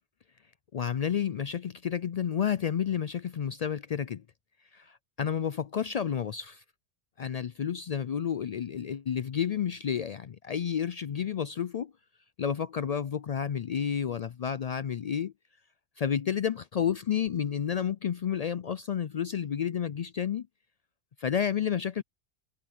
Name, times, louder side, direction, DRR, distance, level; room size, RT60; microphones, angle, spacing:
voice 1, 0.7-4.2 4.7-6.6 7.2-11.9 12.4-15.3 16.0-20.5 21.2-22.0, left 8 dB, 75° left, 0.3 m, -30 dB
omnidirectional pair, 1.2 m